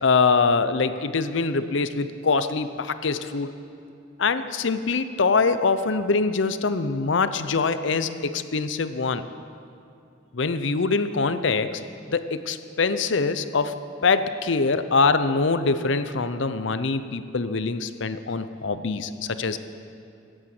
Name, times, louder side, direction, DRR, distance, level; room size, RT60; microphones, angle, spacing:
voice 1, 0.0-3.5 4.2-9.2 10.3-11.8 12.1-13.7 14.0-19.1 19.4-19.6, left 4 dB, 65° left, 12 dB, 0.7 m, -23 dB
17.0 x 8.9 x 7.7 m, 2.5 s
head